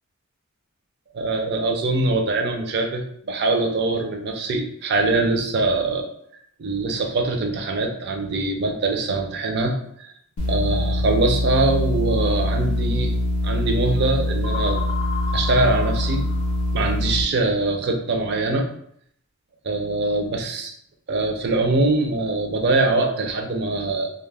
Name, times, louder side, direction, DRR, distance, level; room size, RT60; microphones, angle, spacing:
voice 1, 1.1-6.1 6.6-10.1 10.5-13.1 13.4-14.8 15.3-16.2 16.7-18.7 19.6-20.7 21.1-24.1, right 2 dB, 50° right, 3 dB, 0.4 m, -23 dB
sound 1, 10.4-17.2, left 1 dB, 90° left, 0.5 m, -24 dB
sound 2, 14.4-17.0, left 6 dB, 30° left, 0.5 m, -33 dB
2.2 x 2.0 x 3.2 m, 0.67 s
head